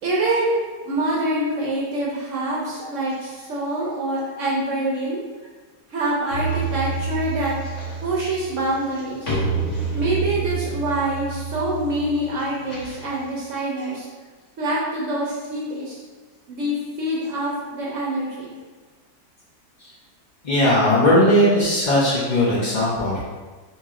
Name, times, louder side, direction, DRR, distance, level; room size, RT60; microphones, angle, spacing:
voice 1, 0.0-5.2 5.9-7.5 8.0-9.4 9.9-14.1 14.6-16.0 16.5-18.5, right 1 dB, 65° right, -5 dB, 0.8 m, -25 dB
sound 1, 6.3-13.3, right 4 dB, 45° left, 1.5 m, -28 dB
voice 2, 20.4-23.2, left 1 dB, 90° left, -7 dB, 0.4 m, -18 dB
3.1 x 2.8 x 3.6 m, 1.4 s
omnidirectional pair, 1.9 m